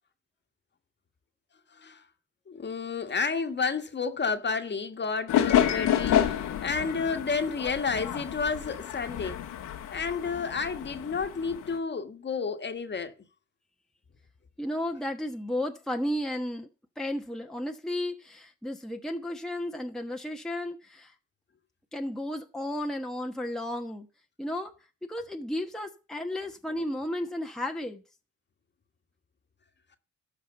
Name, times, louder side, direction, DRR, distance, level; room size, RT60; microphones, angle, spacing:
voice 1, 2.5-9.4 9.9-13.1, left 5 dB, 35° left, 1.6 m, -31 dB
sound 1, 5.3-11.8, left 10 dB, 85° left, 1.7 m, -29 dB
voice 2, 14.6-16.7 17.0-21.1 21.9-24.1 24.4-24.7 25.0-28.0, left 1 dB, ahead, 1.1 m, -33 dB
13.0 x 5.1 x 6.9 m
cardioid pair, 90°, 30 cm